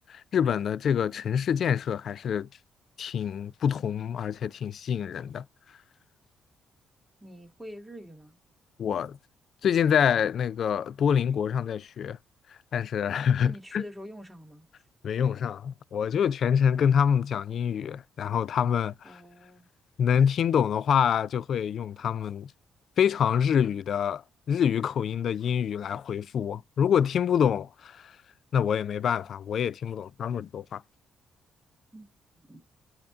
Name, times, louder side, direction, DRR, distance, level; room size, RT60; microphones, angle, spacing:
voice 1, 0.1-2.5 3.0-5.4 8.8-9.2 9.6-12.2 12.7-13.8 15.0-19.1 20.0-22.5 23.0-24.2 24.5-28.1 28.5-30.8, left 8 dB, 60° left, 0.3 m, -26 dB
voice 2, 7.2-8.4 13.4-14.8 19.0-19.7 31.9-32.1 32.4-32.6, equal, 5° right, 1.7 m, -45 dB
8.5 x 2.9 x 3.8 m
cardioid pair, 90°, 0 cm